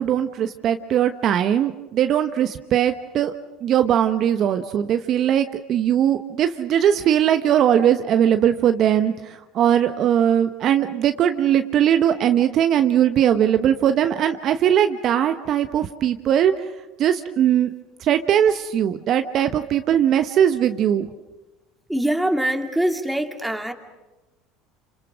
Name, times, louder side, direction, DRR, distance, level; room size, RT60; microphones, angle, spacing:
voice 1, 0.0-3.3 3.6-16.7 17.0-17.7 18.0-21.1, right 10 dB, 50° right, 8 dB, 1.0 m, -20 dB
voice 2, 21.9-23.7, right 1 dB, 5° right, 5 dB, 2.4 m, -23 dB
27.5 x 26.0 x 6.2 m, 1.1 s
hypercardioid pair, 80°, 0 cm